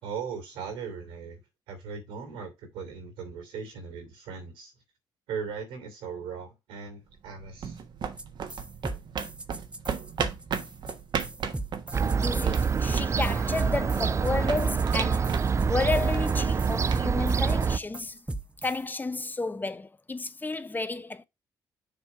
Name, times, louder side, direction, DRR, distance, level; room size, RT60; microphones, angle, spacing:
voice 1, 0.0-1.4 1.7-4.7 5.3-7.8, right 6 dB, 90° right, 2.8 m, -38 dB
sound 1, 7.2-18.0, right 7 dB, 60° right, 1.2 m, -36 dB
sound 2, 8.2-8.3 8.5-18.8, right 2 dB, 15° right, 0.9 m, -38 dB
Fowl / Gull seagull, 11.9-17.8, right 5 dB, 35° right, 0.3 m, -26 dB
voice 2, 12.2-15.3 15.7-18.3 18.6-21.2, left 3 dB, 20° left, 0.9 m, -32 dB
6.9 x 3.4 x 5.8 m
supercardioid pair, 60°, 8 cm